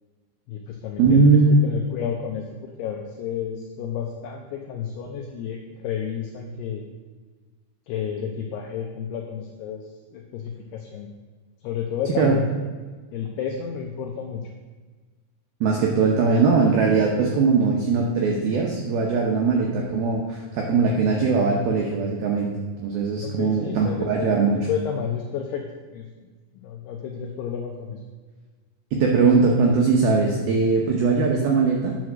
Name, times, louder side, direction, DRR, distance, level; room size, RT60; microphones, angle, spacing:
voice 1, 0.5-6.8 7.9-9.8 10.1-11.1 11.6-12.5 13.1-14.4 17.3-17.4 23.2-25.6 25.9-26.1 26.6-28.0, left 8 dB, 90° left, 1 dB, 2.3 m, -31 dB
voice 2, 1.0-1.7 12.2-12.4 15.6-22.5 22.8-24.6 28.9-32.0, right 4 dB, 90° right, 0 dB, 2.1 m, -20 dB
9.5 x 6.3 x 6.2 m, 1.4 s
omnidirectional pair, 5.8 m